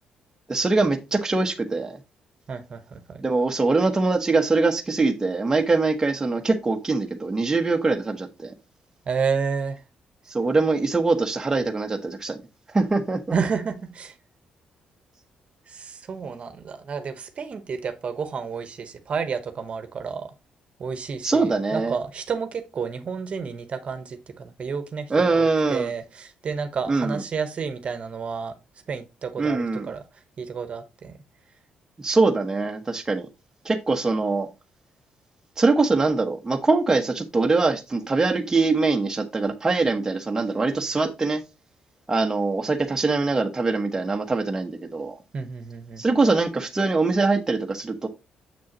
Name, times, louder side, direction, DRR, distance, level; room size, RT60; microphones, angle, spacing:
voice 1, 0.5-2.0 3.2-8.5 10.3-12.4 12.7-13.3 21.2-21.9 25.1-25.9 26.9-27.2 29.4-29.9 32.0-33.3 33.6-34.5 35.6-41.4 42.1-45.2 46.0-48.1, right 3 dB, 20° right, 1.0 m, -23 dB
voice 2, 2.5-3.2 9.1-9.8 13.3-14.1 15.7-20.3 20.8-28.5 28.9-30.0 30.4-31.2 45.3-46.0, right 5 dB, 50° right, 1.1 m, -30 dB
7.0 x 6.2 x 2.9 m
cardioid pair, 85°, 3 cm